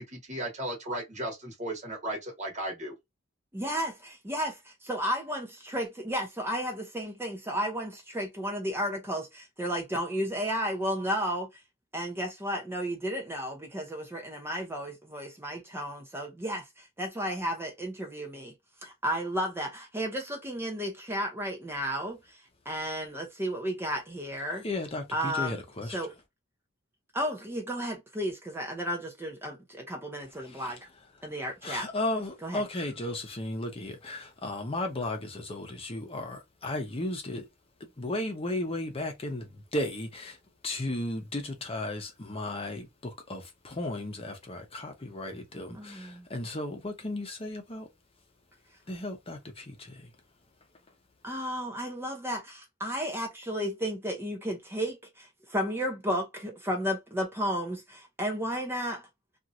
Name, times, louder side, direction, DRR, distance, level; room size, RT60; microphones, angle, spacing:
voice 1, 0.0-2.9, right 1 dB, 35° right, 1.1 m, -35 dB
voice 2, 3.5-11.5 11.9-18.5 18.8-24.6 25.1-25.6 25.9-26.1 27.1-29.6 29.9-30.7 31.2-31.9 32.4-32.6 45.7-46.3 51.2-59.0, equal, 10° right, 0.6 m, -33 dB
voice 3, 24.6-26.0 31.6-37.5 37.8-40.4 40.6-47.9 48.9-50.1, left 1 dB, 30° left, 0.8 m, -35 dB
2.9 x 2.5 x 2.5 m
head